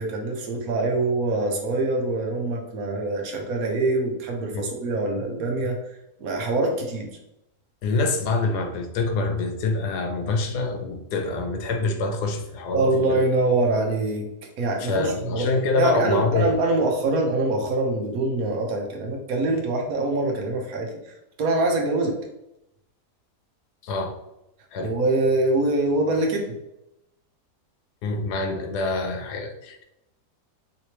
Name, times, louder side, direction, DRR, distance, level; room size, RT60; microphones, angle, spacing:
voice 1, 0.0-7.2 12.7-15.5 15.8-22.2 24.8-26.5, right 2 dB, 65° right, 1 dB, 1.1 m, -24 dB
voice 2, 7.8-13.2 14.8-16.5 23.8-24.2 24.7-24.9 28.0-29.8, left 3 dB, 80° left, 5 dB, 1.2 m, -26 dB
3.3 x 3.0 x 2.9 m, 0.86 s
omnidirectional pair, 1.7 m